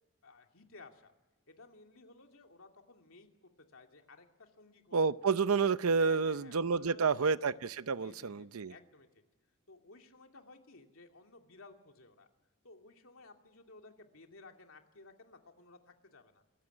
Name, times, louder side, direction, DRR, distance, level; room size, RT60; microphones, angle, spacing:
voice 1, 0.2-1.1 1.5-5.1 6.0-7.3 8.0-9.2 9.7-12.3 12.6-16.4, left 3 dB, 75° left, 3 dB, 2.6 m, -57 dB
voice 2, 4.9-8.7, right 5 dB, 85° right, 15 dB, 0.7 m, -29 dB
26.5 x 15.0 x 9.8 m, 1.2 s
head